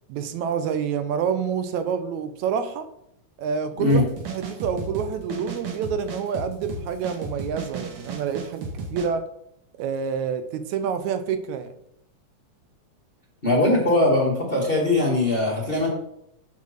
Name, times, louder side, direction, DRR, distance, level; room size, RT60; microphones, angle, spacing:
voice 1, 0.1-2.9 3.4-9.3 9.8-11.7, right 7 dB, 80° right, 10 dB, 2.0 m, -28 dB
sound 1, 3.9-9.1, right 3 dB, 55° right, 2.1 m, -34 dB
voice 2, 13.4-15.9, left 2 dB, 25° left, -3 dB, 1.4 m, -20 dB
7.4 x 5.7 x 6.4 m, 0.77 s
omnidirectional pair, 3.4 m